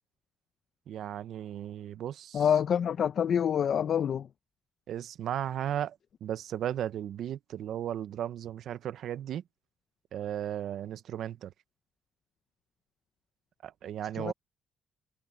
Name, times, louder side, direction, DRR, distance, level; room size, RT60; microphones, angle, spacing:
voice 1, 0.9-2.5 4.9-9.4 10.1-11.5 13.6-14.3, right 10 dB, 75° right, 0.9 m, -35 dB
voice 2, 2.3-4.3 14.2-14.3, left 8 dB, 60° left, 0.9 m, -26 dB
cardioid pair, 90°, 0 cm